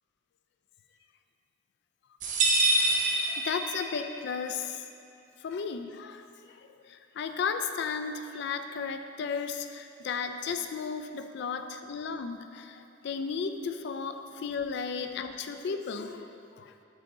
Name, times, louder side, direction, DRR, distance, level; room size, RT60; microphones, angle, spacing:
sound 1, 2.2-4.1, right 2 dB, 40° right, 0.7 m, -26 dB
voice 1, 2.8-4.8 5.4-16.7, left 5 dB, 55° left, 8 dB, 0.3 m, -35 dB
8.2 x 3.9 x 3.7 m, 2.6 s
head